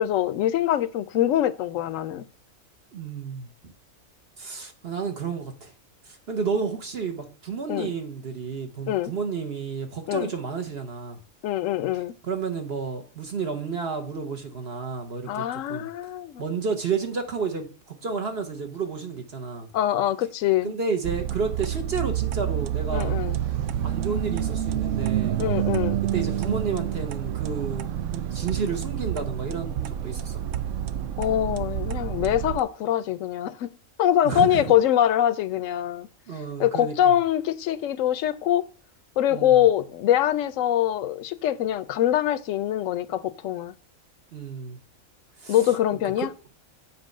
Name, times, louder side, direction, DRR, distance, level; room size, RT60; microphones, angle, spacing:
voice 1, 0.0-2.2 7.7-7.9 8.9-9.1 10.1-10.3 11.4-12.1 15.3-16.4 19.7-20.7 22.9-23.4 25.4-26.0 31.2-33.7 34.0-36.1 36.6-38.6 39.2-43.7 45.5-46.3, left 11 dB, 70° left, 1.0 m, -23 dB
voice 2, 2.9-3.5 4.4-5.7 6.0-11.2 12.2-15.9 16.4-19.7 20.6-23.2 23.8-25.4 26.1-30.4 34.2-34.7 36.3-37.2 39.3-39.6 44.3-44.8 45.4-45.6 46.2-46.3, right 5 dB, 50° right, 1.2 m, -31 dB
sound 1, 21.0-32.6, right 10 dB, 70° right, 0.9 m, -28 dB
7.5 x 4.1 x 6.5 m
omnidirectional pair, 1.5 m